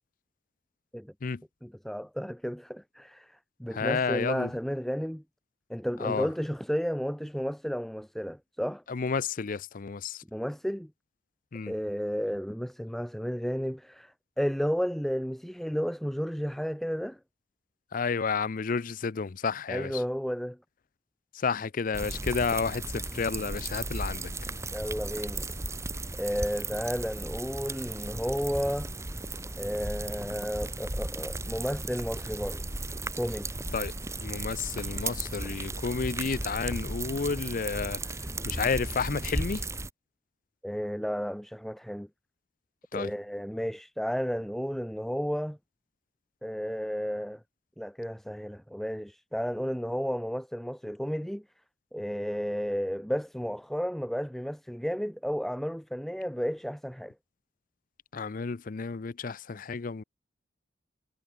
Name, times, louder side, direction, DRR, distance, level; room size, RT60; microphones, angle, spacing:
voice 1, 1.6-5.2 5.7-8.8 10.3-10.9 11.7-17.2 19.7-20.6 24.7-25.5 26.1-28.9 29.6-32.6 33.2-33.5 40.6-42.1 42.9-45.6 46.4-47.4 47.8-51.4 51.9-57.1, equal, ahead, 1.3 m, -32 dB
voice 2, 3.7-4.5 6.0-6.3 8.9-10.2 11.5-11.7 17.9-19.9 21.3-24.3 33.7-33.9 34.2-39.6 42.9-43.1 58.1-60.0, left 5 dB, 45° left, 0.5 m, -31 dB
sound 1, 21.9-39.9, right 2 dB, 15° right, 2.3 m, -35 dB
head